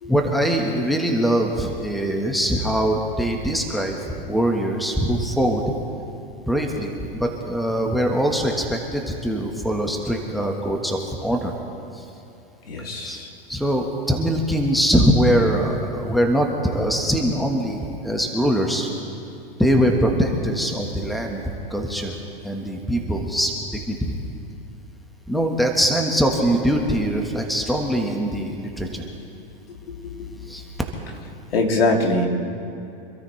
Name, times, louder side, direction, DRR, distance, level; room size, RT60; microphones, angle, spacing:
voice 1, 0.1-5.6 6.5-11.5 11.9-12.0 13.0-13.2 13.5-18.9 19.6-21.4 21.7-22.2 22.4-23.5 23.9-24.2 25.3-29.1 30.5-30.6, equal, ahead, 2 dB, 1.4 m, -22 dB
voice 2, 12.7-13.3 29.7-30.5 31.5-32.3, left 2 dB, 85° left, 1 dB, 2.7 m, -23 dB
26.5 x 13.0 x 3.3 m, 2.7 s
hypercardioid pair, 135°, 29 cm